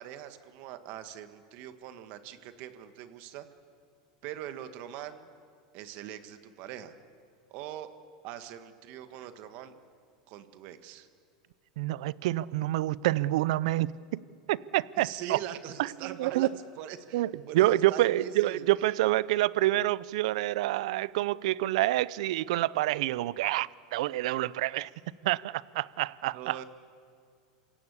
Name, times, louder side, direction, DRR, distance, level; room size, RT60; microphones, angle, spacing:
voice 1, 0.0-3.5 4.2-5.3 5.7-6.9 7.5-7.9 8.2-9.7 10.3-11.1 15.0-16.5 16.8-18.9 26.3-26.6, right 11 dB, 55° right, 1.7 m, -42 dB
voice 2, 11.8-13.9 14.5-15.4 15.8-15.9 16.2-16.5 17.1-24.9 25.2-26.6, right 16 dB, 75° right, 0.5 m, -27 dB
27.0 x 17.0 x 8.3 m
supercardioid pair, 135°, 3 cm